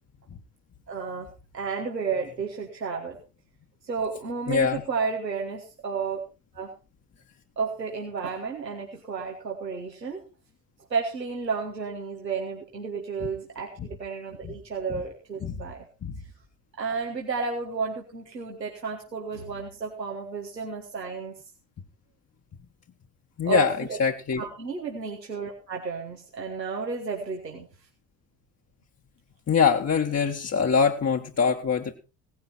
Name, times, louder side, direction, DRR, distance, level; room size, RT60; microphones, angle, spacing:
voice 1, 0.9-1.3 1.5-3.2 3.8-6.2 6.5-6.7 7.6-10.2 10.9-15.8 16.7-21.3 23.4-24.0 24.4-27.7, right 5 dB, 90° right, 0 dB, 1.7 m, -32 dB
voice 2, 4.5-4.8 14.4-14.5 15.4-15.6 16.0-16.2 23.4-23.7 24.0-24.4 29.5-31.9, left 6 dB, 30° left, 3 dB, 1.5 m, -23 dB
17.5 x 11.0 x 4.3 m, 0.33 s
figure-of-eight pair, 55°, 49 cm